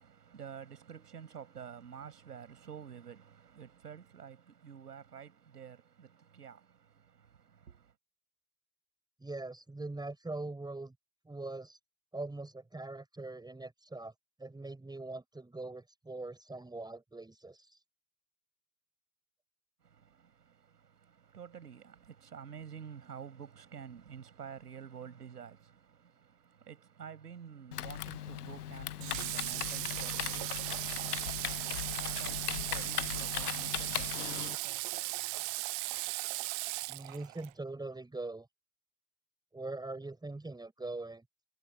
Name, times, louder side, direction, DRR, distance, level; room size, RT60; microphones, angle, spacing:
voice 1, 0.0-8.0 19.8-35.5, right 7 dB, 75° right, 6.9 m, -50 dB
voice 2, 9.2-10.9 11.3-11.8 12.1-14.1 14.4-17.8 36.9-38.5 39.5-41.2, right 2 dB, 10° right, 4.2 m, -42 dB
Typing, 27.7-34.6, left 11 dB, 75° left, 1.0 m, -38 dB
Water / Water tap faucet, 29.0-37.5, right 40 dB or more, 35° right, 0.4 m, -37 dB
figure-of-eight pair, 70°, 47 cm